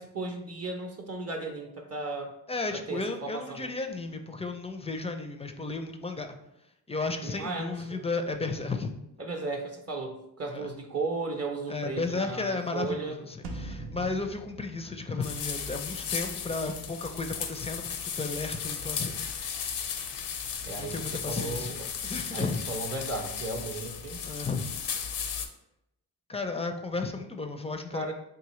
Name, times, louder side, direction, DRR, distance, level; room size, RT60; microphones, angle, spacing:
voice 1, 0.0-2.3 2.7-3.7 7.2-8.1 9.2-13.2 20.6-21.8 22.3-24.2 27.9-28.1, right 3 dB, 35° right, 3 dB, 0.6 m, -35 dB
voice 2, 2.5-6.4 6.9-8.9 10.5-10.7 11.7-19.2 20.8-21.8 22.0-22.6 24.2-24.7 26.3-28.1, left 3 dB, 15° left, 6 dB, 0.4 m, -34 dB
sound 1, 13.4-16.0, right 2 dB, 90° right, 0.6 m, -42 dB
sound 2, 15.2-25.5, left 7 dB, 75° left, 0.6 m, -35 dB
3.7 x 2.7 x 3.0 m, 0.84 s
cardioid pair, 55°, 42 cm